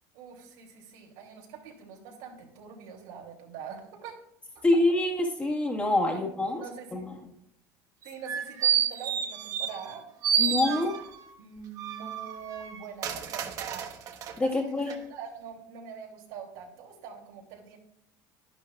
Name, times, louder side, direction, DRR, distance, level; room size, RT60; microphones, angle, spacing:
voice 1, 0.1-4.1 4.5-4.6 6.0-6.2 6.5-7.1 8.0-11.0 11.4-14.1 14.4-17.8, right 7 dB, 90° right, 0 dB, 2.8 m, -44 dB
voice 2, 4.6-6.6 6.9-7.3 10.4-10.9 14.4-14.9, left 2 dB, 15° left, 0 dB, 1.6 m, -26 dB
sound 1, 8.1-9.9 10.2-11.2 11.8-14.4 14.9-15.0, right 8 dB, 40° right, 1.1 m, -30 dB
11.0 x 11.0 x 2.4 m, 0.78 s
cardioid pair, 145°, 9 cm